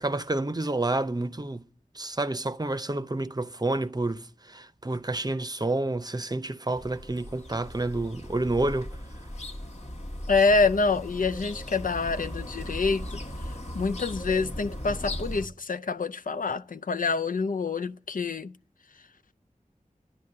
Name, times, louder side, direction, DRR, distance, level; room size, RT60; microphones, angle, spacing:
voice 1, 0.0-1.7 1.9-9.0, right 2 dB, 30° right, 0.7 m, -29 dB
sound 1, 6.7-15.5, left 1 dB, 50° left, 1.3 m, -38 dB
voice 2, 10.3-13.2 13.7-18.5, left 4 dB, 75° left, 0.5 m, -26 dB
11.0 x 10.5 x 6.5 m
wide cardioid pair, 50°, 14 cm